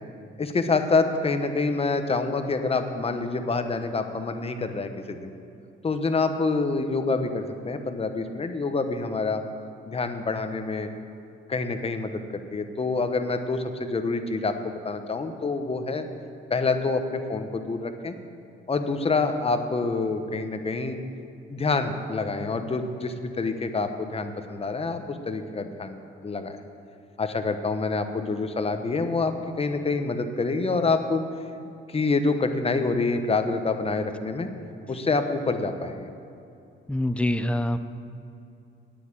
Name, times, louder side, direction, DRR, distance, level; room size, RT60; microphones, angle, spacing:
voice 1, 0.4-5.3 5.8-9.4 9.9-10.9 11.5-16.1 16.5-18.1 18.7-21.0 21.5-26.5 27.2-31.2 31.9-34.5 34.9-36.1, left 3 dB, 30° left, 7 dB, 1.1 m, -27 dB
voice 2, 36.9-37.8, left 1 dB, 5° left, 10 dB, 0.6 m, -25 dB
9.2 x 8.3 x 8.9 m, 2.7 s
cardioid pair, 90°, 20 cm